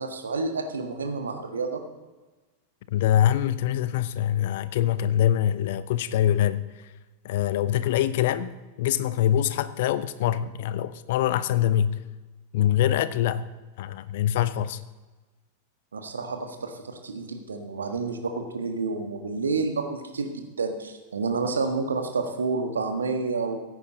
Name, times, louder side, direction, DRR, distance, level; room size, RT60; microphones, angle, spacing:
voice 1, 0.0-1.8 15.9-23.6, right 4 dB, 70° right, 1.5 m, -29 dB
voice 2, 2.9-6.9 7.2-12.0 12.5-13.5 13.8-14.8, left 11 dB, 55° left, 0.6 m, -24 dB
16.0 x 9.2 x 4.0 m
figure-of-eight pair, 90°, 0 cm